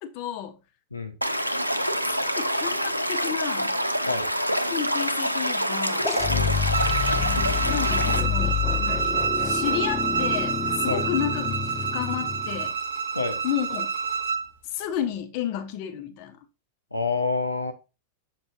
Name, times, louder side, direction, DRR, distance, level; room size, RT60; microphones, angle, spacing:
voice 1, 0.0-0.6 2.3-3.8 4.6-6.1 7.7-12.8 13.4-13.9 14.6-16.4, left 10 dB, 45° left, 0.9 m, -32 dB
Stream / Liquid, 1.2-8.2, equal, 90° right, 0.5 m, -26 dB
sound 1, 6.0-12.7, left 8 dB, 25° left, 0.4 m, -28 dB
voice 2, 6.3-6.6 10.9-11.0 13.1-13.4 16.9-17.7, left 4 dB, 85° left, 0.6 m, -28 dB
Bowed string instrument, 6.7-14.5, right 6 dB, 60° right, 0.9 m, -28 dB
7.0 x 5.2 x 2.6 m
figure-of-eight pair, 90°, 0 cm